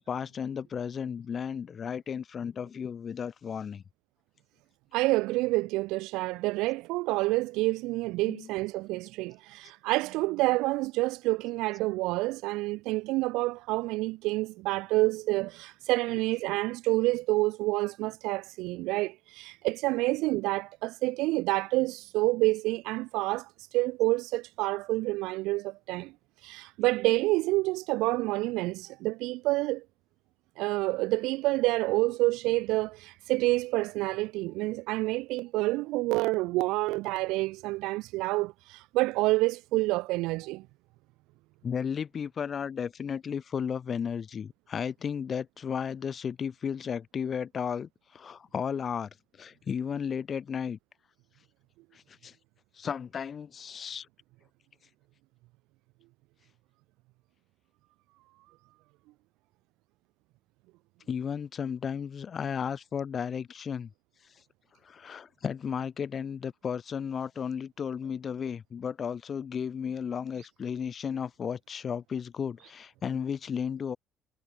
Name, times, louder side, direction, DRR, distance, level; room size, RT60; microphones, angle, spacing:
voice 1, 0.0-3.8 8.3-8.5 41.6-49.1 49.4-50.8 51.9-52.3 52.8-54.1 61.1-63.9 64.8-74.0, left 7 dB, 30° left, 3.2 m, -34 dB
voice 2, 4.9-26.1 26.4-29.8 30.6-40.6, right 21 dB, 80° right, 1.6 m, -28 dB
cardioid pair, 160°, 0 cm